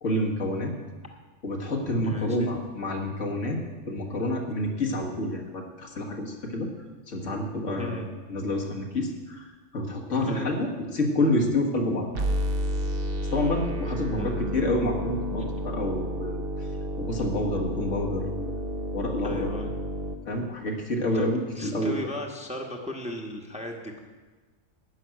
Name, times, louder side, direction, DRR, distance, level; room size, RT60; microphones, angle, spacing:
voice 1, 0.0-0.7 1.4-3.6 3.9-6.7 7.1-8.0 8.3-12.1 13.3-16.7 17.0-18.5 18.9-19.5 20.3-22.0, left 1 dB, 80° left, 1 dB, 1.9 m, -28 dB
voice 2, 2.0-2.5 7.8-8.1 10.2-10.5 14.2-14.7 19.2-19.7 21.1-21.3 21.5-24.0, left 1 dB, 5° right, 1 dB, 1.1 m, -36 dB
sound 1, 12.2-20.2, equal, 50° right, 1.1 m, -31 dB
11.5 x 6.1 x 8.9 m, 1.3 s
omnidirectional pair, 1.3 m